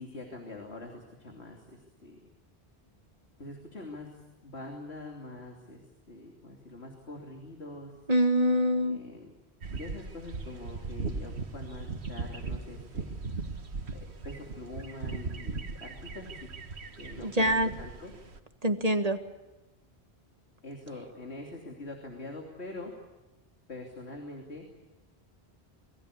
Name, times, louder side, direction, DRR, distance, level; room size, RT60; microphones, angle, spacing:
voice 1, 0.0-2.2 3.4-7.9 8.8-9.3 9.7-13.2 13.9-16.5 17.0-18.1 20.6-22.9 23.7-24.6, left 2 dB, 85° left, 1 dB, 3.3 m, -44 dB
voice 2, 8.1-9.0 17.2-17.7 18.6-19.2, equal, 35° right, 8 dB, 1.6 m, -25 dB
sound 1, 9.6-18.4, right 4 dB, 90° right, 1.8 m, -38 dB
27.5 x 21.5 x 8.4 m, 1.0 s
omnidirectional pair, 1.1 m